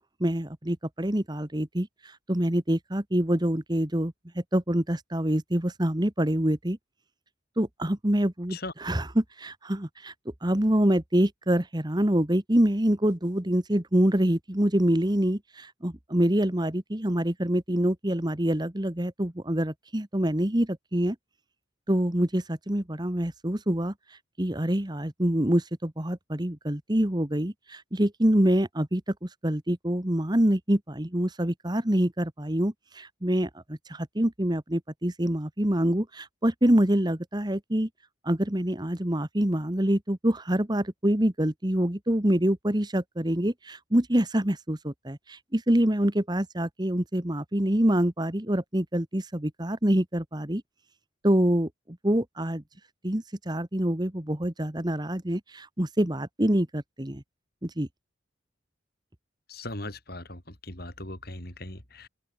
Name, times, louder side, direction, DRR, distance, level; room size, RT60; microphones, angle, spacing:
voice 1, 0.0-6.8 7.6-10.1 10.4-21.1 21.9-23.9 24.4-37.9 38.2-50.6 51.2-52.6 53.0-57.2 57.6-57.9, right 1 dB, 20° right, 1.4 m, -26 dB
voice 2, 59.5-62.1, left 2 dB, 50° left, 5.8 m, -39 dB
head